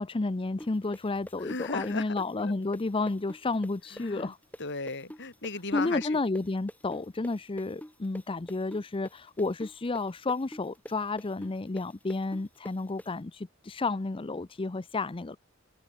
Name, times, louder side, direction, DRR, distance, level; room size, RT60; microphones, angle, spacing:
voice 1, 0.0-4.4 5.7-15.4, left 3 dB, 25° left, 0.5 m, -31 dB
sound 1, 0.6-8.2 8.5-13.1, left 1 dB, 5° left, 1.8 m, -44 dB
voice 2, 1.4-2.0 2.4-2.6 3.9-4.3 4.6-6.2, left 3 dB, 55° left, 6.2 m, -36 dB
head